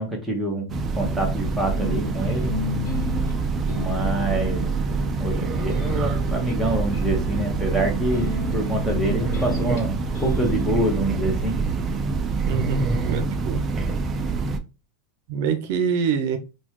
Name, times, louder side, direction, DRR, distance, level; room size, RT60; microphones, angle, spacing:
voice 1, 0.0-2.5 3.7-4.7 5.2-9.9 10.2-11.6, right 1 dB, ahead, 0 dB, 1.1 m, -26 dB
Train, 0.7-14.6, right 4 dB, 25° right, 0.4 m, -25 dB
sound 1, 1.7-11.0, left 3 dB, 70° left, 1.0 m, -34 dB
voice 2, 12.4-13.6 15.3-16.4, right 7 dB, 60° right, 7 dB, 0.6 m, -25 dB
4.0 x 2.3 x 3.0 m, 0.30 s
supercardioid pair, 145°, 0 cm